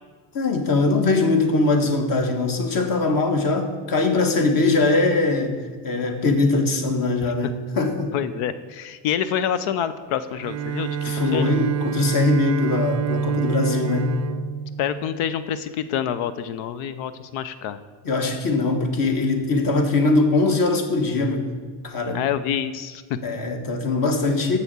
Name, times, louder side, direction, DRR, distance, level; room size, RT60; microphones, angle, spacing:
voice 1, 0.3-5.6 5.8-8.1 11.0-14.1 18.0-21.5 21.8-22.2 23.2-24.6, left 3 dB, 45° left, 6 dB, 1.4 m, -21 dB
voice 2, 8.1-11.0 11.3-11.5 13.7-14.0 14.8-17.8 22.1-23.2, left 9 dB, 80° left, 13 dB, 0.7 m, -27 dB
Bowed string instrument, 10.3-15.5, right 7 dB, 35° right, 0.4 m, -27 dB
7.0 x 6.9 x 8.1 m, 1.5 s
cardioid pair, 140°, 49 cm